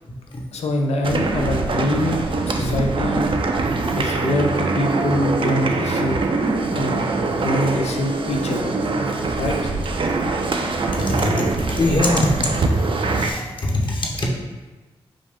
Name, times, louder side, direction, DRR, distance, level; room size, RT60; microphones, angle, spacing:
voice 1, 0.5-3.3 4.0-6.2 6.7-7.1 7.4-8.7 9.4-9.7, left 1 dB, 80° left, 2 dB, 0.6 m, -24 dB
sound 1, 1.0-13.3, right 3 dB, 50° right, 0.5 m, -23 dB
voice 2, 9.0-9.4 11.0-12.3 12.9-14.3, left 1 dB, 50° left, -2 dB, 1.1 m, -23 dB
5.1 x 2.4 x 3.6 m, 1.2 s
cardioid pair, 50°, 11 cm